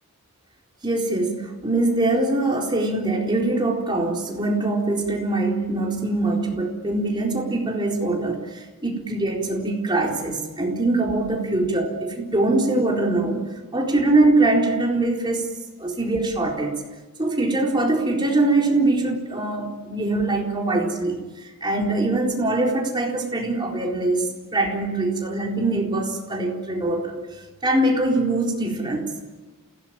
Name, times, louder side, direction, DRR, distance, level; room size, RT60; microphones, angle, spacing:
voice 1, 0.8-15.4 15.8-16.7 17.2-27.2 27.6-29.2, right 2 dB, 20° right, -1 dB, 4.1 m, -23 dB
29.0 x 17.5 x 9.0 m, 1.2 s
head